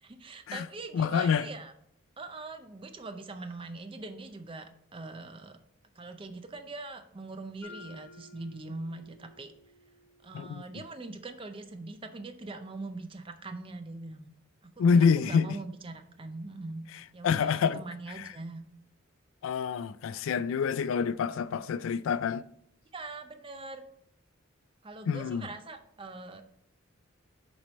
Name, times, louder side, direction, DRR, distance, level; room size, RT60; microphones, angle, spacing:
voice 1, 0.0-1.7 2.2-5.6 6.0-9.5 10.2-14.3 14.6-16.8 17.1-18.6 22.9-23.8 24.8-26.4, right 3 dB, 25° right, 0.5 m, -42 dB
voice 2, 0.9-1.5 10.3-10.6 14.8-15.5 17.2-17.8 18.2-18.3 19.4-22.4 25.1-25.4, left 6 dB, 70° left, 0.3 m, -27 dB
Mallet percussion, 7.6-11.6, left 3 dB, 5° left, 1.3 m, -54 dB
7.3 x 3.2 x 5.1 m
head